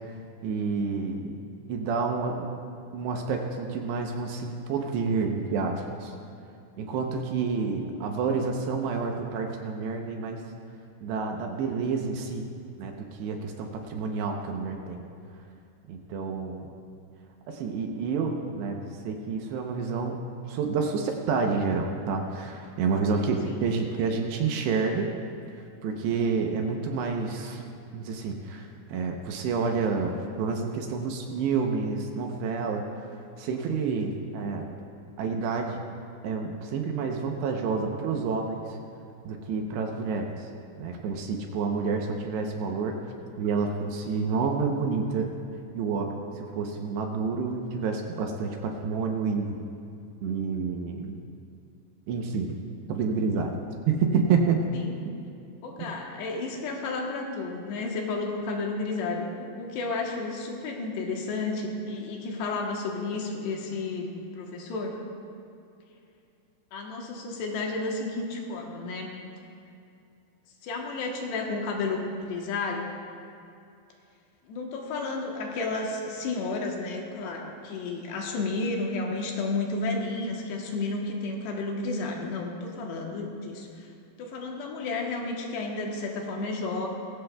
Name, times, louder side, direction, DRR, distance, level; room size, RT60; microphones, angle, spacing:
voice 1, 0.4-1.4 1.7-2.5 2.9-6.1 6.8-10.4 11.0-12.5 12.8-12.9 13.2-15.0 15.9-16.6 17.5-25.1 25.8-27.6 27.9-33.1 33.4-34.7 35.2-35.8 36.2-38.8 39.3-40.5 40.8-43.0 43.4-45.3 45.7-49.6 50.2-51.2 52.1-52.5 52.9-53.5 53.9-54.6 55.1-55.2 55.8-55.9, right 5 dB, 75° right, 2 dB, 2.8 m, -29 dB
voice 2, 54.7-55.1 55.6-65.0 66.7-69.1 70.6-72.9 74.5-83.9 84.2-86.9, left 3 dB, 70° left, 0 dB, 3.1 m, -32 dB
20.0 x 16.0 x 2.3 m, 2.5 s
omnidirectional pair, 5.3 m